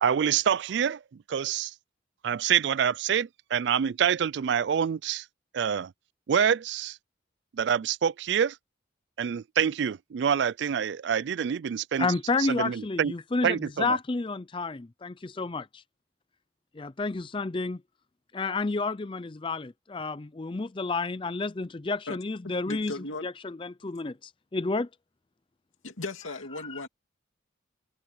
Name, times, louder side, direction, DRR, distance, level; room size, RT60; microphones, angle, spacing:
voice 1, 0.0-1.7 2.2-5.3 5.5-5.9 6.3-7.0 7.5-8.6 9.2-12.1 12.4-13.1 13.4-14.0, right 8 dB, 60° right, 0.3 m, -26 dB
voice 2, 12.0-15.8 16.7-17.8 18.3-22.9 23.2-24.9 26.5-26.8, left 3 dB, 25° left, 0.4 m, -30 dB
voice 3, 22.4-23.3 25.8-26.9, left 2 dB, 90° left, 2.8 m, -37 dB
head